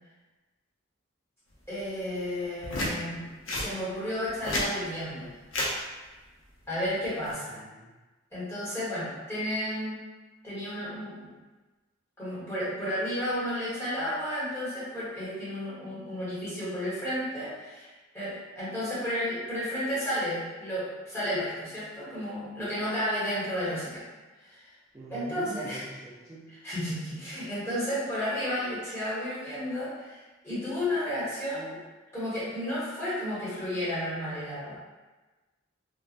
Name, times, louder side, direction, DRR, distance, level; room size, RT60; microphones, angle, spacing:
voice 1, 1.7-3.2 3.5-5.3 6.7-7.6 8.3-10.0 10.4-11.3 12.2-24.0 24.4-24.7 25.1-25.8 26.6-31.8 32.1-34.8, equal, 15° left, -11 dB, 1.3 m, -32 dB
sound 1, 2.6-2.9 3.5-3.7 4.3-4.7 5.5-5.7 7.0-7.3, left 1 dB, 70° left, 0.7 m, -30 dB
voice 2, 7.5-7.9 24.9-26.6, right 1 dB, 15° right, -9 dB, 0.4 m, -43 dB
3.1 x 2.3 x 2.5 m, 1.2 s
head